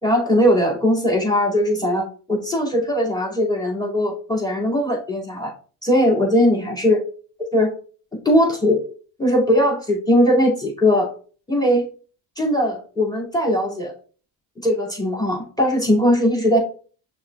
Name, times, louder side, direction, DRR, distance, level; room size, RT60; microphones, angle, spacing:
voice 1, 0.0-5.5 5.8-7.0 7.5-7.7 8.2-8.8 9.2-11.1 11.5-11.9 12.4-13.9 14.6-16.6, equal, 10° left, -1 dB, 2.2 m, -19 dB
6.3 x 3.2 x 2.3 m, 0.40 s
supercardioid pair, 70°, 47 cm